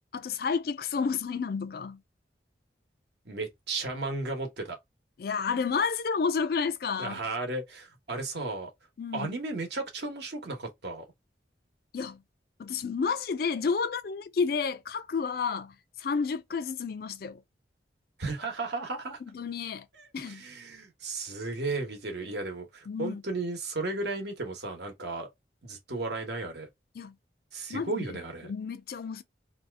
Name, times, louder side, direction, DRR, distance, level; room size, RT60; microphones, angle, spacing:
voice 1, 0.1-2.0 5.2-7.2 9.0-9.3 11.9-12.2 12.6-15.7 16.0-17.4 19.3-19.8 20.1-20.4 22.9-23.2 27.0-27.1 27.7-28.0 28.5-29.2, left 5 dB, 55° left, 0.4 m, -30 dB
voice 2, 3.2-4.8 7.0-8.7 9.1-11.1 18.2-19.2 20.0-25.3 25.6-26.7 27.5-28.5, right 3 dB, 65° right, 1.0 m, -34 dB
2.7 x 2.4 x 3.3 m
head